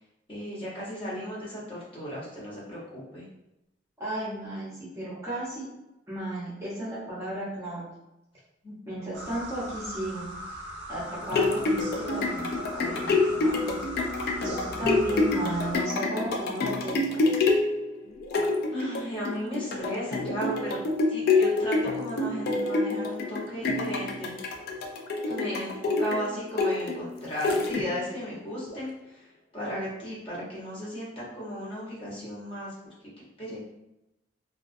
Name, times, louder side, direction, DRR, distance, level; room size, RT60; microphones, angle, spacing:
voice 1, 0.3-3.2 8.6-8.7 18.7-20.8 21.1-24.4 25.2-29.3 29.5-32.7 33.4-33.6, equal, 30° left, -8 dB, 0.9 m, -35 dB
voice 2, 4.0-5.7 6.1-7.9 8.9-10.3 10.9-13.8 14.4-17.2, right 1 dB, 15° right, -9 dB, 0.7 m, -34 dB
sound 1, 9.1-15.8, equal, 70° right, 0.5 m, -39 dB
sound 2, 11.0-28.2 28.7-28.8, left 3 dB, 55° left, 0.3 m, -27 dB
2.3 x 2.2 x 2.5 m, 0.91 s
head